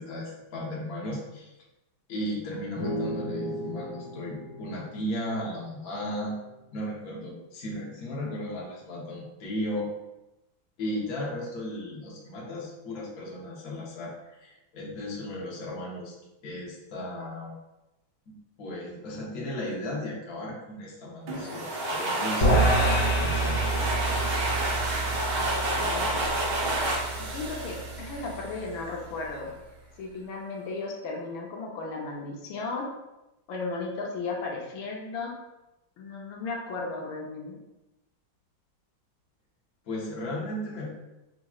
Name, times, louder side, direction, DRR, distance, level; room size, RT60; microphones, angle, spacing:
voice 1, 0.0-1.5 2.1-6.3 6.7-9.9 10.8-16.1 16.4-17.5 18.3-23.6 39.9-40.9, left 1 dB, 55° left, -4 dB, 1.4 m, -35 dB
sound 1, 2.8-6.3, equal, 15° right, 0.8 m, -36 dB
sound 2, 21.3-28.7, right 1 dB, 65° right, 1.4 m, -30 dB
sound 3, 22.4-28.8, right 2 dB, 70° left, 1.8 m, -28 dB
voice 2, 25.8-26.2 27.2-29.5 30.0-32.9 33.5-35.3 36.0-37.6, left 3 dB, 85° left, -1 dB, 1.5 m, -35 dB
6.0 x 2.9 x 2.3 m, 0.98 s
omnidirectional pair, 2.1 m